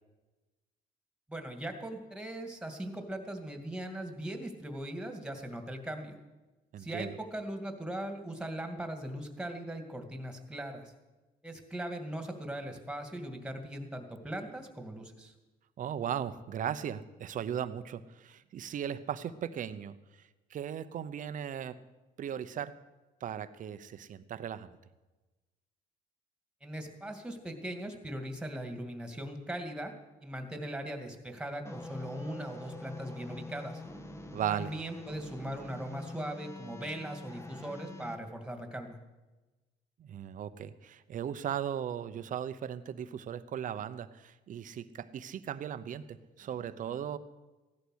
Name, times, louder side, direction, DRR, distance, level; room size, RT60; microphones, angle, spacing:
voice 1, 1.3-6.1 6.8-10.9 11.4-15.3 26.6-29.9 30.2-33.8 34.5-39.0, right 1 dB, 5° right, 5 dB, 2.3 m, -39 dB
voice 2, 6.7-7.2 15.8-20.0 20.5-21.8 22.2-22.8 23.2-24.7 34.3-34.7 40.0-47.2, right 9 dB, 50° right, 12 dB, 0.9 m, -37 dB
sound 1, 31.6-38.1, left 2 dB, 15° left, 1.3 m, -45 dB
16.0 x 11.5 x 6.4 m, 1.1 s
cardioid pair, 110°, 17 cm